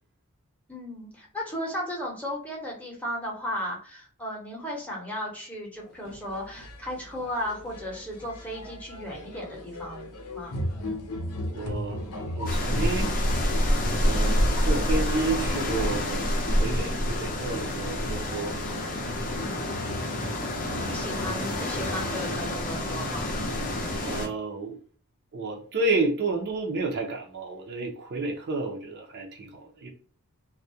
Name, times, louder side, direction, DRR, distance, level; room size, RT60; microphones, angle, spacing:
voice 1, 0.7-10.6 19.3-19.7 20.5-23.3, equal, 5° left, 0.7 m, -35 dB
sound 1, 5.8-22.1, left 1 dB, 80° left, 0.6 m, -37 dB
voice 2, 11.5-12.1 12.4-13.2 14.0-18.6 24.1-24.8 25.3-29.9, right 3 dB, 50° right, 0.5 m, -31 dB
sound 2, 12.5-24.3, left 1 dB, 40° left, 0.5 m, -27 dB
2.3 x 2.1 x 2.6 m
head